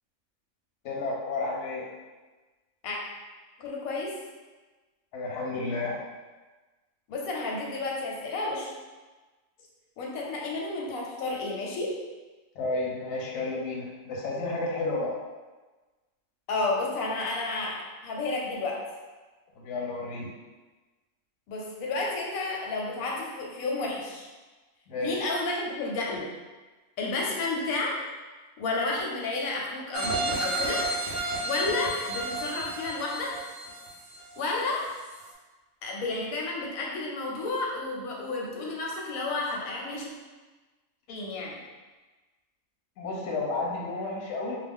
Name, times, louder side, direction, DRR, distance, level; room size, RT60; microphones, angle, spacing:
voice 1, 0.8-1.9 5.1-6.0 12.5-15.1 19.6-20.3 24.9-25.2 43.0-44.6, left 3 dB, 65° left, -3 dB, 0.8 m, -31 dB
voice 2, 3.6-4.1 7.1-8.7 10.0-12.0 16.5-18.8 21.5-24.3 25.0-26.3 27.0-28.0 28.6-30.8 31.4-33.3 34.4-34.8 35.8-40.1 41.1-41.6, left 3 dB, 90° left, -2 dB, 1.0 m, -31 dB
sound 1, 29.9-34.7 35.1-35.2, right 1 dB, 90° right, 0.4 m, -32 dB
2.3 x 2.1 x 3.4 m, 1.2 s
omnidirectional pair, 1.4 m